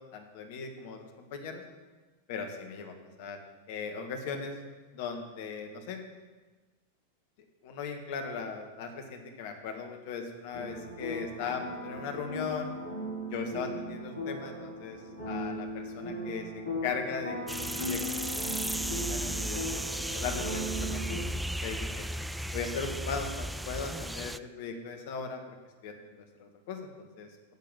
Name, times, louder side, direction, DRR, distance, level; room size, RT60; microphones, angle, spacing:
voice 1, 0.1-1.0 1.3-1.6 2.3-3.4 3.7-4.6 4.9-6.0 7.6-12.7 13.3-15.0 15.2-18.3 18.7-19.8 20.1-21.0 21.6-22.0 22.5-25.4 25.8-27.3, left 5 dB, 50° left, 4 dB, 1.6 m, -38 dB
sound 1, 10.5-21.2, equal, 80° left, 3.1 m, -37 dB
sound 2, 17.5-24.4, right 1 dB, 5° right, 0.3 m, -35 dB
9.5 x 7.4 x 7.4 m, 1.3 s
figure-of-eight pair, 90°, 0 cm